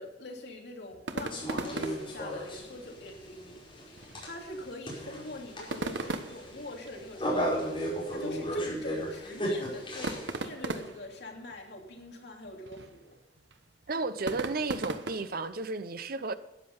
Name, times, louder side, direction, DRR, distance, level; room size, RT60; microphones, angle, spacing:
voice 1, 0.0-13.1, left 1 dB, 65° left, 3.0 m, -44 dB
sound 1, 0.9-15.5, right 2 dB, 75° right, 1.1 m, -40 dB
sound 2, 1.3-10.4, equal, 30° left, 5.1 m, -35 dB
voice 2, 13.9-16.3, right 3 dB, 55° right, 0.9 m, -33 dB
13.0 x 10.0 x 5.5 m
head